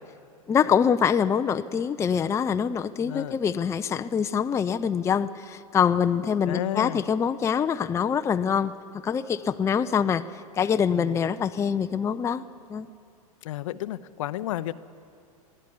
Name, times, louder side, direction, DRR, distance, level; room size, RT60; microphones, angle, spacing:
voice 1, 0.5-8.7 9.0-12.4 12.7-12.9, left 7 dB, 15° left, 10 dB, 0.5 m, -25 dB
voice 2, 3.0-3.4 6.5-7.0 10.9-11.2 13.4-14.7, left 14 dB, 60° left, 15 dB, 0.6 m, -32 dB
22.0 x 15.5 x 8.4 m, 2.5 s
figure-of-eight pair, 95°, 19 cm